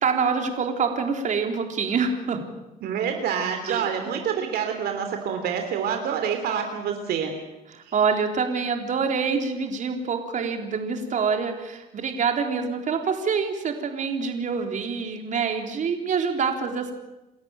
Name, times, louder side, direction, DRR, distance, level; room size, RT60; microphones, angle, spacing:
voice 1, 0.0-2.4 3.7-3.9 7.7-16.9, right 5 dB, 45° right, 4 dB, 3.8 m, -26 dB
voice 2, 2.8-7.3, right 7 dB, 70° right, 5 dB, 3.2 m, -27 dB
29.0 x 13.5 x 9.1 m, 0.99 s
cardioid pair, 110°, 17 cm